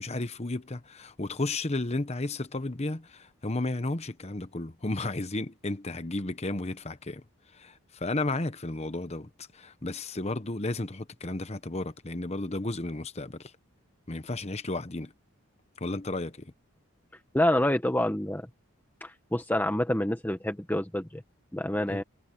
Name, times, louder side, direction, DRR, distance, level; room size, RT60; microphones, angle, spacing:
voice 1, 0.0-7.2 7.5-13.5 14.1-15.1 15.8-16.5 21.9-22.0, left 2 dB, 30° left, 1.0 m, -33 dB
voice 2, 17.3-18.5 19.0-21.2 21.5-22.0, left 1 dB, 10° left, 0.9 m, -27 dB
head